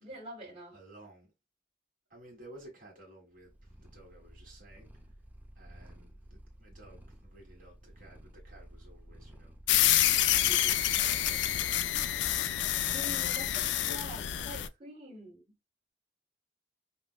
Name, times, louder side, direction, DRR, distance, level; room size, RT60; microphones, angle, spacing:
voice 1, 0.0-0.8 10.4-10.8 12.8-15.6, equal, 30° right, 1.5 m, -46 dB
voice 2, 0.7-1.3 2.1-5.2 5.5-12.1 12.7-13.1 13.8-14.1, right 1 dB, 50° right, 1.5 m, -55 dB
Purr, 3.3-14.6, right 1 dB, 10° right, 0.5 m, -53 dB
sound 1, 9.7-14.7, left 12 dB, 80° left, 0.4 m, -28 dB
5.2 x 2.1 x 2.2 m
head